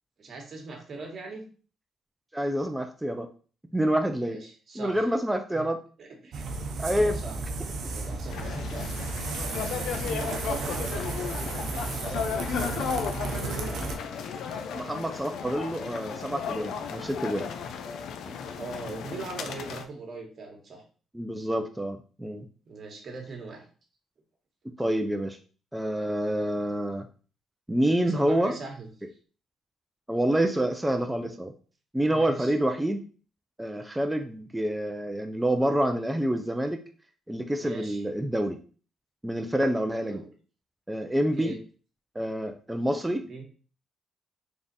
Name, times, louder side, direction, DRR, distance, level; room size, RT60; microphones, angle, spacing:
voice 1, 0.2-1.4 4.2-5.0 5.5-5.6 6.0-7.4 7.9-8.9 10.2-14.0 18.5-20.8 22.6-23.7 28.0-29.2 32.1-32.5 37.6-38.0 40.0-40.3 41.1-41.6 43.0-43.4, right 3 dB, 50° right, 2 dB, 1.2 m, -41 dB
voice 2, 2.3-3.3 3.7-4.4 4.8-5.8 6.8-7.2 9.9-10.2 14.5-17.5 18.3-18.4 21.1-22.5 24.8-25.4 25.7-27.1 27.7-28.5 30.1-31.5 31.9-33.0 33.6-36.8 37.3-38.6 39.2-40.2 40.9-41.5 42.2-43.2, right 1 dB, 10° right, 5 dB, 0.4 m, -27 dB
sound 1, 6.3-13.9, right 3 dB, 75° right, 0.6 m, -33 dB
sound 2, 8.3-19.8, left 7 dB, 75° left, 0.4 m, -35 dB
sound 3, 11.7-18.1, left 3 dB, 45° left, 0.8 m, -48 dB
3.5 x 2.4 x 4.0 m, 0.39 s
cardioid pair, 90°, 0 cm